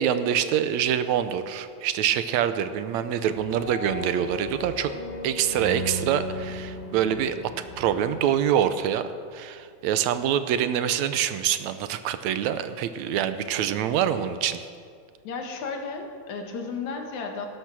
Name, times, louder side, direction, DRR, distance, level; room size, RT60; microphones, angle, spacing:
voice 1, 0.0-4.9 5.2-14.7, right 9 dB, 80° right, 11 dB, 2.0 m, -25 dB
sound 1, 3.3-8.3, left 1 dB, 20° left, 3.2 m, -47 dB
sound 2, 3.5-8.7, left 1 dB, 40° right, 3.0 m, -37 dB
voice 2, 15.2-17.5, left 4 dB, 75° left, 3 dB, 3.0 m, -33 dB
18.0 x 12.0 x 6.1 m, 2.2 s
omnidirectional pair, 3.3 m